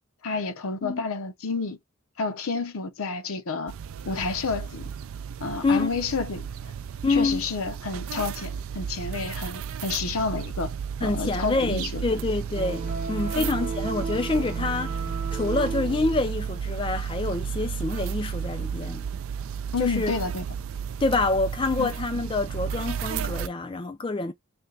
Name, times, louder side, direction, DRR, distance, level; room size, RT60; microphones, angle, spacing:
voice 1, 0.2-1.8 2.2-3.7 4.1-4.9 5.4-6.5 7.1-10.7 11.0-12.0 13.3-13.5 19.7-20.5 21.8-21.9, left 4 dB, 70° left, 0.7 m, -30 dB
sound 1, 3.7-23.5, right 7 dB, 65° right, 0.3 m, -33 dB
voice 2, 7.0-7.4 11.0-15.0 15.3-19.1 19.8-20.1 21.0-24.3, left 3 dB, 25° left, 0.3 m, -27 dB
sound 2, 12.5-17.1, right 4 dB, 30° right, 0.9 m, -35 dB
3.4 x 2.2 x 3.8 m
head